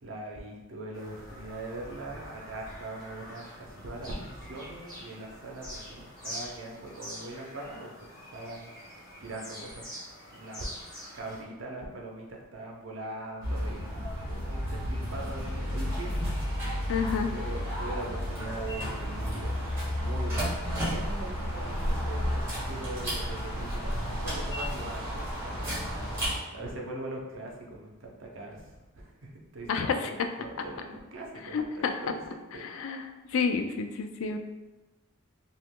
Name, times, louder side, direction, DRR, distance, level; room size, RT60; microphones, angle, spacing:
voice 1, 0.0-9.8 10.3-10.6 11.1-13.9 14.2-17.0 17.3-25.7 26.5-32.9, right 2 dB, 60° right, 0 dB, 0.6 m, -42 dB
Bird vocalization bird call bird song, 0.9-11.4, equal, 5° left, 1.3 m, -45 dB
sound 1, 13.4-26.4, equal, 10° right, 1.1 m, -32 dB
voice 2, 16.9-17.3 29.7-30.1 31.5-31.9 32.6-33.0 33.3-34.4, left 5 dB, 70° left, 6 dB, 0.3 m, -29 dB
2.9 x 2.4 x 3.6 m, 1.1 s
head